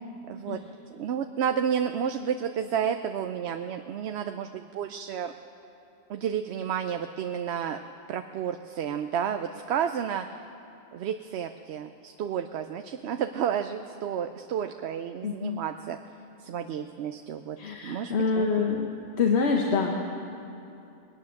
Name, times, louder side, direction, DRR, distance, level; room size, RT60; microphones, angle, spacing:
voice 1, 0.3-0.6 0.9-5.3 6.1-7.8 8.1-10.3 10.9-16.0 16.4-17.6 17.8-18.7, right 8 dB, 90° right, 6 dB, 0.9 m, -31 dB
voice 2, 15.2-15.6 17.6-18.9 19.2-19.9, left 5 dB, 90° left, 1 dB, 1.2 m, -26 dB
21.5 x 9.4 x 6.5 m, 2.7 s
omnidirectional pair, 1.1 m